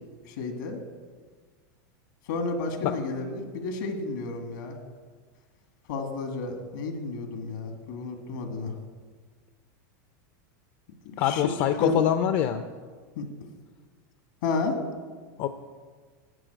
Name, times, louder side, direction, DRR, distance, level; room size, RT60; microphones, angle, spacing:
voice 1, 0.3-0.8 2.3-4.8 5.9-8.7 11.1-11.4 11.8-12.0 13.2-13.3 14.4-14.8, left 3 dB, 75° left, 5 dB, 1.8 m, -31 dB
voice 2, 11.2-12.6 15.4-15.5, left 10 dB, 50° left, 9 dB, 0.5 m, -24 dB
12.5 x 4.5 x 7.9 m, 1.5 s
supercardioid pair, 130°, 10 cm